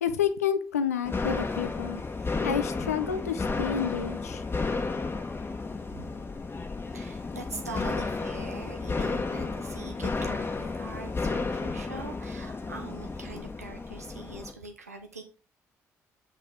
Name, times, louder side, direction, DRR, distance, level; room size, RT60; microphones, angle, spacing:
voice 1, 0.0-2.0 2.4-4.4, left 8 dB, 85° left, 0.5 m, -29 dB
sound 1, 1.1-14.5, left 4 dB, 30° left, 1.4 m, -32 dB
voice 2, 6.9-15.2, right 3 dB, 85° right, 0.9 m, -43 dB
7.7 x 5.5 x 3.8 m
figure-of-eight pair, 45°, 8 cm